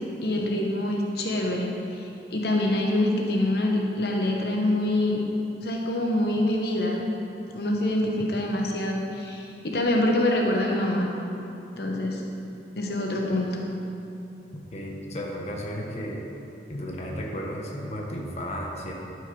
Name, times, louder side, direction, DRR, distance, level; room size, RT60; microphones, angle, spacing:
voice 1, 0.2-5.2 5.6-7.0 7.5-11.1 11.8-12.2 12.8-13.6, left 1 dB, 65° left, 0 dB, 1.0 m, -25 dB
voice 2, 14.7-16.2 16.7-18.9, equal, 40° left, -1 dB, 1.1 m, -33 dB
11.5 x 6.3 x 5.3 m, 2.8 s
head